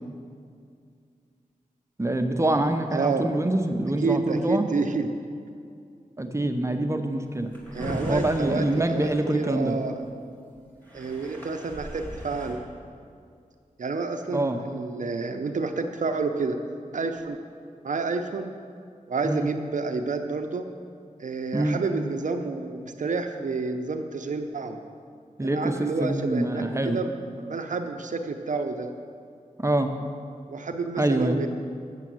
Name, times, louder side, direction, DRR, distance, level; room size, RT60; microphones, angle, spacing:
voice 1, 2.0-4.6 6.2-7.5 8.1-9.8 14.3-14.6 19.2-19.5 21.5-21.8 25.4-27.0 29.6-29.9 31.0-31.4, right 1 dB, 20° right, 5 dB, 0.7 m, -25 dB
voice 2, 2.9-3.3 4.0-5.1 7.7-10.0 10.9-12.6 13.8-16.6 16.9-17.4 17.8-18.5 19.1-20.7 21.2-24.8 25.4-27.1 27.4-28.9 30.5-31.5, right 4 dB, 65° right, 6 dB, 0.6 m, -29 dB
Drawer open or close, 7.3-10.0 10.6-10.7 10.8-12.5, equal, 15° left, 2.3 m, -37 dB
7.5 x 7.0 x 7.6 m, 2.3 s
wide cardioid pair, 85°, 14 cm